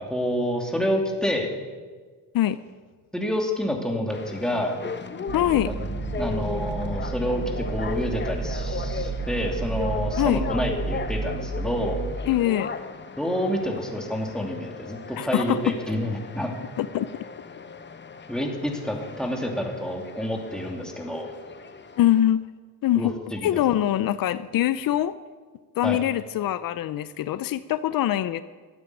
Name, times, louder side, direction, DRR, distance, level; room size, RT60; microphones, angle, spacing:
voice 1, 0.0-1.5 3.1-4.8 5.7-5.8 6.2-12.0 13.2-16.5 18.3-21.3 23.0-23.5 25.8-26.0, equal, ahead, 1 dB, 2.8 m, -28 dB
sound 1, 4.1-22.2, left 5 dB, 30° left, 0.9 m, -37 dB
voice 2, 5.3-5.7 10.2-10.4 12.3-12.7 15.2-15.8 16.8-17.1 22.0-22.4 22.8-23.1 23.4-25.1 25.8-28.4, left 12 dB, 75° left, 15 dB, 0.6 m, -23 dB
sound 2, 5.3-12.1, right 4 dB, 60° right, 1.6 m, -31 dB
13.5 x 9.3 x 8.4 m, 1.5 s
cardioid pair, 90°, 35 cm